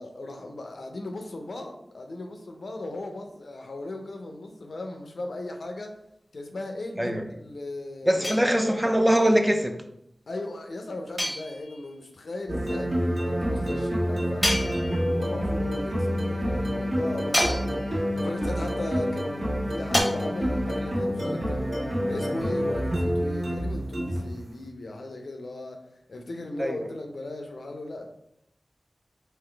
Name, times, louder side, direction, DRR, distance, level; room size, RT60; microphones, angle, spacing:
voice 1, 0.0-6.0 6.3-8.5 10.3-25.8 26.1-28.1, left 2 dB, 80° left, 3 dB, 0.5 m, -37 dB
voice 2, 8.1-9.8 26.6-26.9, equal, 10° right, 5 dB, 0.4 m, -22 dB
sound 1, 8.2-9.0 11.2-12.0 14.4-15.3 17.3-18.1 19.9-20.0, left 1 dB, 15° left, 0.9 m, -29 dB
sound 2, 12.5-24.4, equal, 60° right, 1.4 m, -28 dB
3.9 x 2.6 x 3.3 m, 0.77 s
wide cardioid pair, 50°, 0 cm